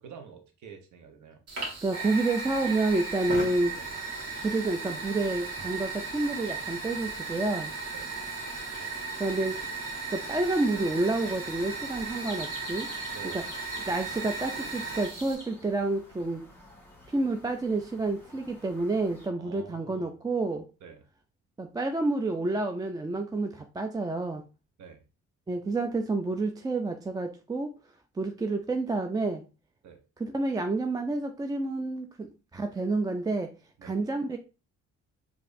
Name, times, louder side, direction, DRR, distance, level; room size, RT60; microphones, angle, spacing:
voice 1, 0.0-1.4 3.7-3.9 7.9-8.1 13.1-13.4 19.4-20.1 20.8-21.0 24.8-25.0 29.8-30.0 33.8-34.0, right 6 dB, 75° right, 4 dB, 0.9 m, -48 dB
Fire, 1.5-15.3, right 4 dB, 55° right, 1.6 m, -36 dB
voice 2, 1.6-3.7 4.4-7.7 9.2-9.6 10.1-12.9 13.3-13.4 13.9-16.4 17.1-20.7 21.6-24.4 25.5-27.7 28.2-29.4 30.2-33.5 33.8-34.4, right 2 dB, 15° right, 5 dB, 0.3 m, -29 dB
sound 1, 2.4-19.3, left 1 dB, 5° left, 1.4 m, -50 dB
4.7 x 2.5 x 2.5 m, 0.32 s
cardioid pair, 90°, 30 cm